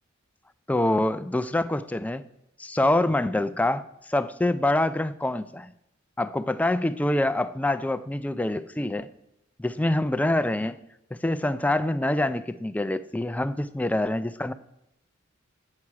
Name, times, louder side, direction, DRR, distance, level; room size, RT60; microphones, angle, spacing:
voice 1, 0.7-2.2 2.6-5.7 6.2-9.1 9.6-10.8 11.1-14.5, left 1 dB, 5° left, 12 dB, 0.3 m, -25 dB
8.5 x 5.8 x 4.7 m, 0.84 s
head